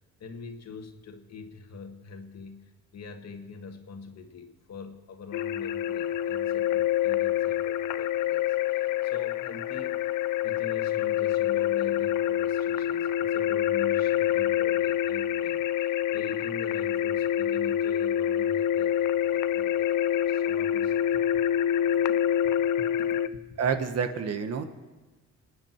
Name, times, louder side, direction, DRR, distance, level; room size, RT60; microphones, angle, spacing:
voice 1, 0.2-10.0 10.4-21.1 21.9-22.0 22.8-23.4, left 4 dB, 60° left, 5 dB, 1.8 m, -44 dB
sound 1, 5.3-23.3, left 11 dB, 85° left, 0.6 m, -26 dB
voice 2, 23.6-24.6, right 6 dB, 55° right, 8 dB, 1.3 m, -28 dB
24.0 x 9.7 x 4.5 m, 1.3 s
cardioid pair, 90°, 30 cm